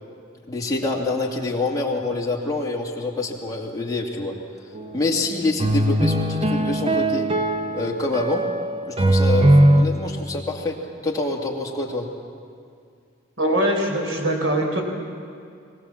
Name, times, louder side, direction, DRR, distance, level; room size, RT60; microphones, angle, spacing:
voice 1, 0.5-4.3 4.9-7.3 7.7-8.5 8.9-10.8 11.0-12.1, left 2 dB, 20° left, -2 dB, 2.4 m, -26 dB
sound 1, 4.7-4.9 5.6-9.8, right 1 dB, 30° right, 0.8 m, -19 dB
voice 2, 13.4-14.8, right 1 dB, 70° right, 2 dB, 4.0 m, -22 dB
23.0 x 17.0 x 7.3 m, 2.3 s
head